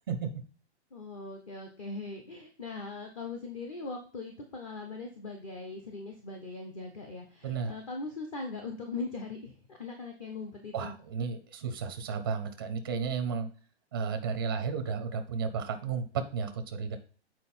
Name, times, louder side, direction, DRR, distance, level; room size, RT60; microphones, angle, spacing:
voice 1, 0.9-11.0, left 3 dB, 30° left, 3 dB, 0.8 m, -40 dB
voice 2, 10.7-13.5 13.9-17.0, right 6 dB, 20° right, 7 dB, 0.5 m, -33 dB
7.5 x 4.5 x 4.2 m, 0.40 s
hypercardioid pair, 175°, 34 cm